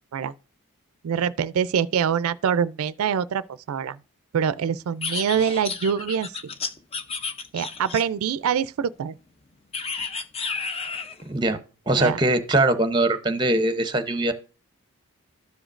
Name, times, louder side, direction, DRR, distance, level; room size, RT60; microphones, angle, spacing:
voice 1, 1.0-4.0 4.3-6.4 7.5-9.1 12.0-12.2, right 7 dB, 80° right, 0.3 m, -25 dB
sound 1, 5.0-8.3 9.7-11.2, left 5 dB, 25° left, 0.5 m, -32 dB
voice 2, 11.9-14.3, right 2 dB, 20° right, 0.7 m, -21 dB
13.0 x 5.0 x 2.5 m
head